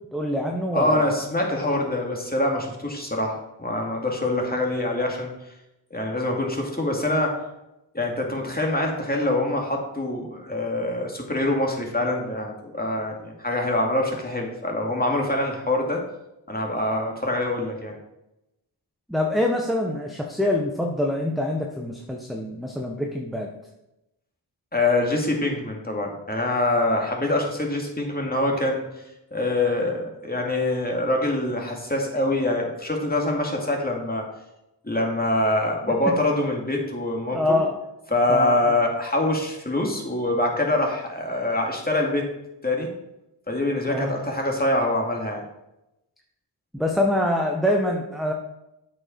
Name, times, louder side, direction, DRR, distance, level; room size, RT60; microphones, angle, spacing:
voice 1, 0.1-1.0 19.1-23.5 35.9-36.1 37.3-37.8 38.3-38.6 43.9-44.1 46.7-48.3, left 1 dB, ahead, 1 dB, 1.1 m, -25 dB
voice 2, 0.7-5.3 5.9-7.4 7.9-16.0 16.5-17.9 24.7-28.8 29.3-34.2 34.8-37.6 38.1-42.3 42.6-42.9 43.5-45.4, left 1 dB, 20° left, 0 dB, 2.3 m, -25 dB
8.4 x 5.3 x 5.1 m, 0.90 s
cardioid pair, 50°, 49 cm